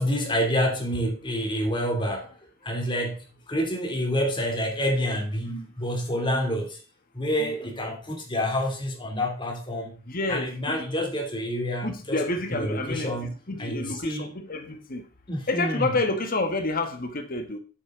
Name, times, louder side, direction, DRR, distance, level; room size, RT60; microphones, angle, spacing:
voice 1, 0.0-2.3 2.6-6.8 7.1-10.0 10.3-12.2 12.5-13.3 13.6-14.3 15.3-16.0, equal, 25° left, 3.0 m, -28 dB
voice 2, 6.1-6.5 7.4-7.5 10.1-10.9 11.8-15.1 15.5-17.6, left 2 dB, 45° left, 1.5 m, -29 dB
10.0 x 8.3 x 3.9 m
head